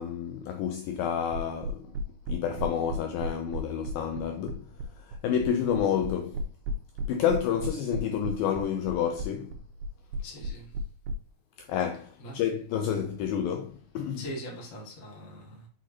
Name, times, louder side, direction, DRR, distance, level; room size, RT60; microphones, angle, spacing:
voice 1, 0.0-1.9 2.3-4.6 5.1-6.4 7.1-9.5 11.6-14.3, left 8 dB, 85° left, 2.1 m, -29 dB
sound 1, 1.3-11.1, right 2 dB, 80° right, 2.5 m, -33 dB
voice 2, 10.2-10.7 12.2-12.4 14.2-15.7, equal, 60° left, 0.8 m, -41 dB
6.2 x 5.9 x 2.7 m
omnidirectional pair, 4.8 m